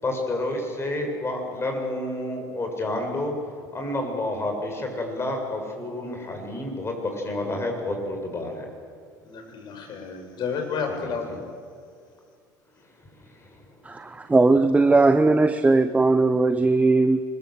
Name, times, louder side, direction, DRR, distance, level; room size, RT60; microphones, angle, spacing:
voice 1, 0.0-3.3 3.7-8.7 11.0-11.2 13.3-13.7, left 1 dB, 25° left, 3 dB, 7.8 m, -29 dB
voice 2, 9.2-11.5, left 5 dB, 50° left, 4 dB, 6.4 m, -31 dB
voice 3, 13.8-17.2, right 3 dB, 15° right, 10 dB, 1.0 m, -19 dB
25.0 x 22.5 x 8.1 m, 2.1 s
hypercardioid pair, 70°, 10 cm